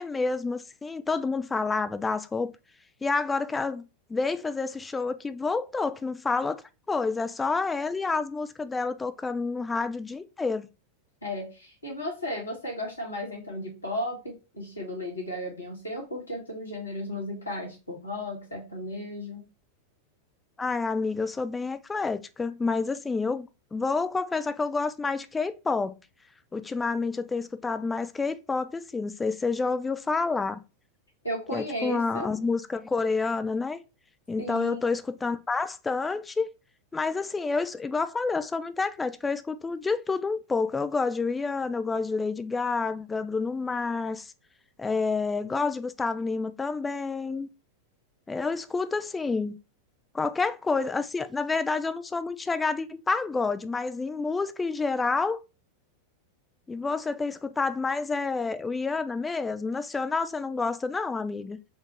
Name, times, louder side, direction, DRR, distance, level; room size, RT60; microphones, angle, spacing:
voice 1, 0.0-2.5 3.0-6.6 6.9-10.7 20.6-26.0 26.5-30.6 31.5-33.8 34.3-36.5 36.9-44.3 44.8-47.5 48.3-49.6 50.1-55.4 56.7-61.6, left 4 dB, 10° left, 0.3 m, -29 dB
voice 2, 11.2-19.4 31.2-32.3 34.4-34.8, left 1 dB, 80° left, 1.5 m, -35 dB
4.3 x 2.4 x 3.0 m
figure-of-eight pair, 90°, 0 cm